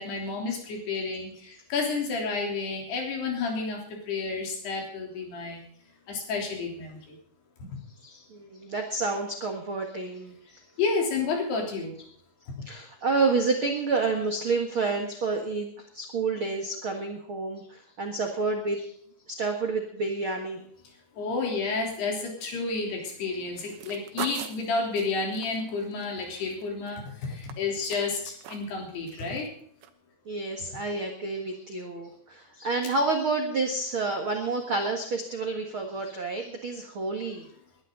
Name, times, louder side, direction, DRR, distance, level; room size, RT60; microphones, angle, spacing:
voice 1, 0.0-5.6 6.1-7.2 7.7-7.8 10.8-11.9 12.5-12.7 21.1-29.5, left 4 dB, 65° left, 1 dB, 5.4 m, -31 dB
voice 2, 8.0-10.6 12.6-18.9 19.3-20.6 30.2-37.5, right 3 dB, 55° right, 3 dB, 1.4 m, -29 dB
sound 1, 23.6-26.9 27.2-28.8 29.1-29.5 29.8-29.9, right 11 dB, 80° right, 3.3 m, -41 dB
20.0 x 12.5 x 3.9 m, 0.63 s
omnidirectional pair, 5.0 m